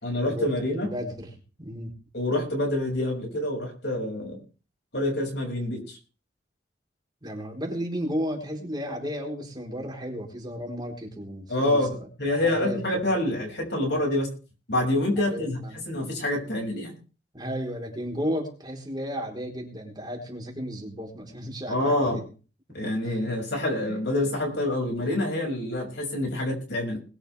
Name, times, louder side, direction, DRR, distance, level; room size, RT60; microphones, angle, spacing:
voice 1, 0.0-0.9 2.1-4.4 4.9-6.0 11.5-14.3 14.7-15.6 15.9-16.9 21.7-22.2 22.7-27.0, left 1 dB, 70° left, 2 dB, 6.2 m, -27 dB
voice 2, 0.8-1.3 1.6-1.9 7.2-13.1 15.1-15.7 17.3-22.2 23.0-23.2 23.9-24.0, equal, 25° right, 0 dB, 4.2 m, -34 dB
21.5 x 12.0 x 3.5 m, 0.36 s
head